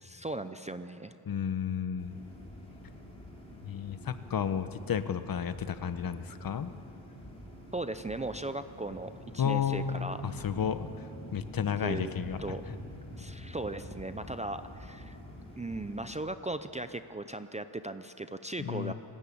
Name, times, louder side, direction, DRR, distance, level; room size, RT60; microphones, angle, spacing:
voice 1, 0.0-1.1 7.7-10.2 11.8-12.1 12.4-12.6 13.2-15.2 15.6-18.9, right 2 dB, 15° right, 10 dB, 0.5 m, -37 dB
voice 2, 1.3-2.2 3.6-6.7 9.4-10.9 11.3-12.4 18.6-18.9, left 8 dB, 45° left, 11 dB, 1.0 m, -32 dB
sound 1, 2.0-16.1, left 1 dB, 10° left, 4.1 m, -47 dB
29.5 x 13.0 x 8.6 m, 2.9 s
cardioid pair, 130°, 49 cm